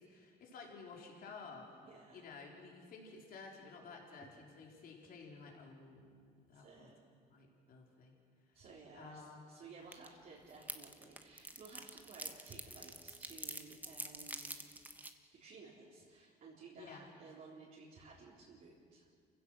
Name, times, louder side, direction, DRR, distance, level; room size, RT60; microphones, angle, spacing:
voice 1, 0.0-1.8 2.1-6.9 7.3-8.1 8.5-8.6 8.9-9.5 16.8-17.0, left 4 dB, 60° left, 0 dB, 4.2 m, -53 dB
voice 2, 1.8-2.2 6.5-6.9 8.5-14.6 15.3-19.1, right 4 dB, 55° right, -7 dB, 3.9 m, -56 dB
sound 1, 9.9-10.1 10.3-15.1, right 2 dB, 10° right, 1.4 m, -46 dB
28.5 x 16.0 x 6.4 m, 2.1 s
cardioid pair, 110°, 17 cm